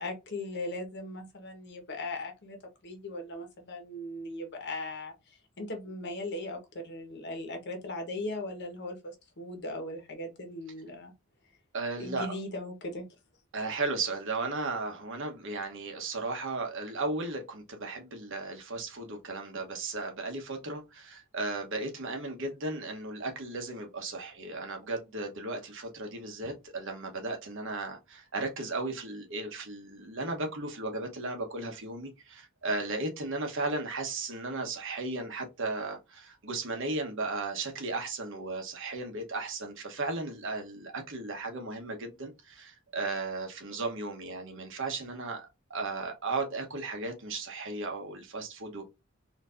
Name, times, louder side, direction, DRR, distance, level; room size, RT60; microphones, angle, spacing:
voice 1, 0.0-2.6 2.8-11.1 12.0-13.0, left 2 dB, 55° left, 1.2 m, -38 dB
voice 2, 11.7-12.4 13.5-48.8, right 3 dB, 65° right, 1.1 m, -35 dB
4.3 x 2.7 x 2.5 m
head